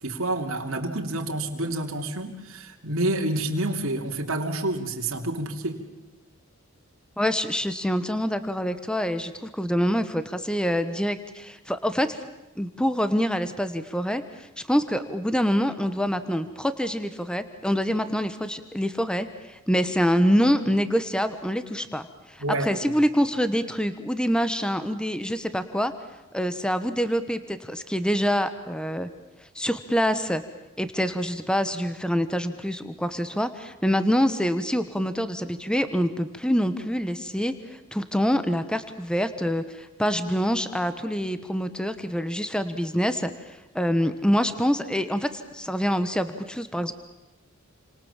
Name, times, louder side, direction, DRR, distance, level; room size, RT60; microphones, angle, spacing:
voice 1, 0.0-5.8 22.4-22.9, right 1 dB, 70° right, 1 dB, 3.0 m, -28 dB
voice 2, 7.2-12.2 12.6-25.9 26.3-29.1 29.4-30.4 30.8-46.9, equal, 5° left, 11 dB, 1.1 m, -26 dB
29.0 x 26.5 x 7.3 m, 0.99 s
head